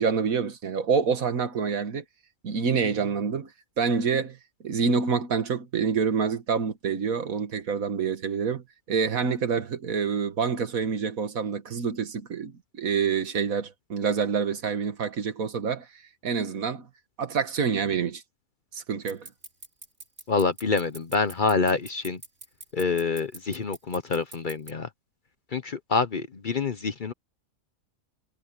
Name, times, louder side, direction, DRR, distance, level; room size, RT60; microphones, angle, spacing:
voice 1, 0.0-2.0 2.4-3.5 3.8-4.4 4.6-15.9 16.2-16.9 17.2-18.2 18.7-19.3, right 6 dB, 80° right, 1.9 m, -27 dB
sound 1, 19.1-24.7, right 2 dB, 60° right, 4.4 m, -42 dB
voice 2, 20.3-22.2 22.7-24.9 25.5-27.1, left 4 dB, 40° left, 0.9 m, -26 dB
omnidirectional pair, 1.4 m